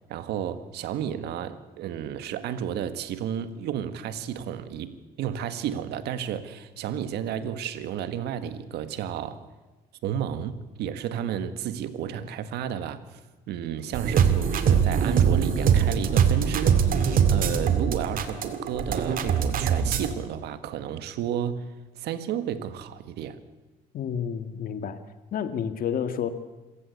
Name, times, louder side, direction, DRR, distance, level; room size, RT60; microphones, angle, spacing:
voice 1, 0.1-9.4 10.0-13.2 13.5-23.4, right 9 dB, 75° right, 1.6 m, -32 dB
sound 1, 13.9-20.1, right 7 dB, 55° right, 2.3 m, -22 dB
voice 2, 23.9-25.0 25.3-26.3, left 8 dB, 60° left, 2.0 m, -30 dB
26.5 x 15.5 x 8.1 m
cardioid pair, 110°, 17 cm